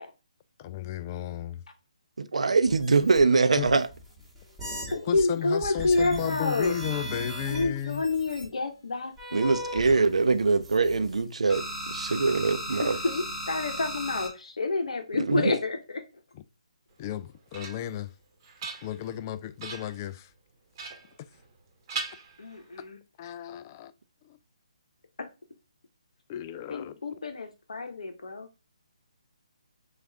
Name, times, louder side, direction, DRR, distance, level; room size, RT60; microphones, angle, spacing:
voice 1, 0.6-1.6 3.6-3.7 5.1-8.0 16.3-16.4 17.0-18.1 18.8-20.3 23.2-23.9 24.2-24.4 26.3-27.0, left 11 dB, 25° left, 0.3 m, -34 dB
voice 2, 2.2-3.9 9.3-13.0 15.3-15.6, right 4 dB, 70° right, 0.6 m, -23 dB
sound 1, 2.7-5.2 5.6-8.5 9.2-11.2 11.5-14.3, equal, ahead, 1.4 m, -38 dB
voice 3, 4.9-6.7 7.5-9.6 12.8-16.0 22.4-23.0 26.7-28.5, left 3 dB, 65° left, 0.9 m, -29 dB
sound 2, 17.0-18.0 18.4-19.2 19.6-20.0 20.8-21.6 21.9-22.8, right 4 dB, 30° right, 1.1 m, -40 dB
6.2 x 2.5 x 3.4 m
figure-of-eight pair, 145°, 4 cm